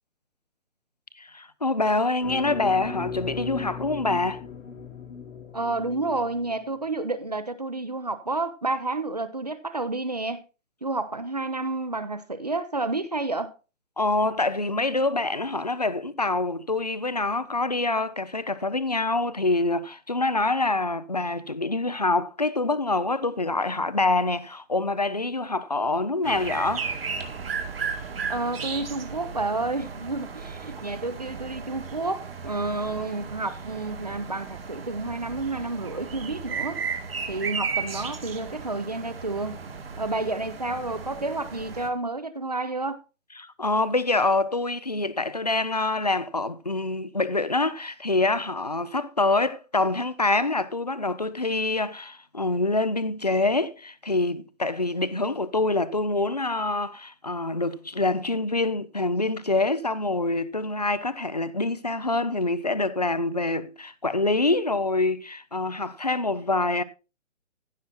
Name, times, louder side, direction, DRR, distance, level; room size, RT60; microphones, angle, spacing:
voice 1, 1.2-4.4 14.0-26.9 43.4-66.8, left 2 dB, 35° left, 0.5 m, -26 dB
sound 1, 2.2-6.7, left 6 dB, 85° left, 2.0 m, -37 dB
voice 2, 5.5-10.4 10.8-13.5 28.3-36.8 37.3-39.6 40.0-43.0, right 2 dB, 35° right, 0.7 m, -30 dB
sound 2, 26.2-41.9, right 5 dB, 50° right, 2.1 m, -35 dB
15.0 x 6.1 x 4.2 m
hypercardioid pair, 175°, 38 cm